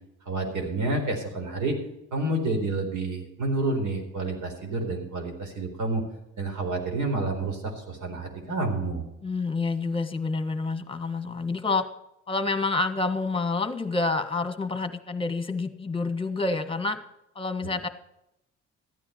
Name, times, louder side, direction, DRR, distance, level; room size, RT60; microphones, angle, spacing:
voice 1, 0.3-1.8 2.1-6.0 6.4-9.1, right 2 dB, 75° right, 3 dB, 4.2 m, -29 dB
voice 2, 9.2-11.9 12.3-17.0 17.3-17.9, left 3 dB, 15° left, 10 dB, 1.5 m, -28 dB
14.0 x 9.8 x 5.7 m, 0.86 s
cardioid pair, 90°, 30 cm